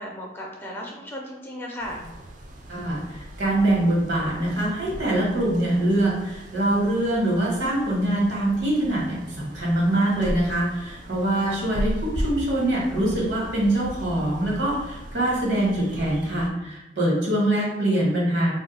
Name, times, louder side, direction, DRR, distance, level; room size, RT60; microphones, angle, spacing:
voice 1, 0.0-2.1 11.4-11.6, equal, 10° left, -2 dB, 0.4 m, -36 dB
sound 1, 1.8-16.5, equal, 45° right, 0.5 m, -37 dB
voice 2, 2.7-18.5, right 1 dB, 80° right, -4 dB, 1.2 m, -24 dB
2.6 x 2.4 x 4.0 m, 0.97 s
head